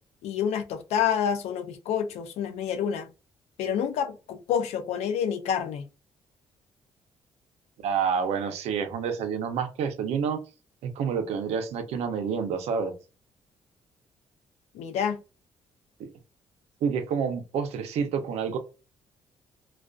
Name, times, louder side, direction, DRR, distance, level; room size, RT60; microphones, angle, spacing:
voice 1, 0.2-3.1 3.6-5.9 14.7-15.2, left 8 dB, 90° left, 0.5 m, -28 dB
voice 2, 7.8-10.4 10.8-13.0 16.0-16.1 16.8-18.6, right 6 dB, 80° right, 0.6 m, -28 dB
2.5 x 2.3 x 2.2 m
cardioid pair, 130°, 11 cm